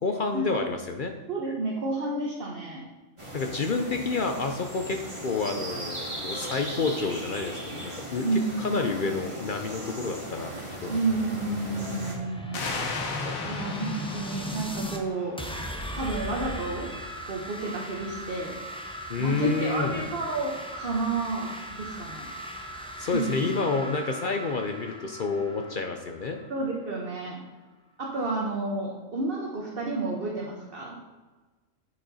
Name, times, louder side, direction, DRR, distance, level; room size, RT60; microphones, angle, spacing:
voice 1, 0.0-1.1 3.3-5.0 5.2-10.5 10.8-11.0 13.2-13.5 19.1-20.1 23.0-26.4, left 4 dB, 55° left, 5 dB, 0.6 m, -29 dB
voice 2, 1.3-2.8 8.2-8.7 9.1-9.2 10.9-12.7 13.4-15.4 15.9-16.9 17.2-18.5 19.2-22.3 23.0-23.4 26.5-27.4 28.0-31.0, right 2 dB, 45° right, -2 dB, 1.2 m, -30 dB
sound 1, 3.2-12.2, right 1 dB, 20° right, 1.8 m, -38 dB
sound 2, 10.4-15.0 15.4-26.9, equal, 5° left, 0.5 m, -38 dB
sound 3, 12.5-15.9, left 4 dB, 85° left, 1.6 m, -36 dB
8.6 x 6.5 x 4.1 m, 1.3 s
omnidirectional pair, 1.4 m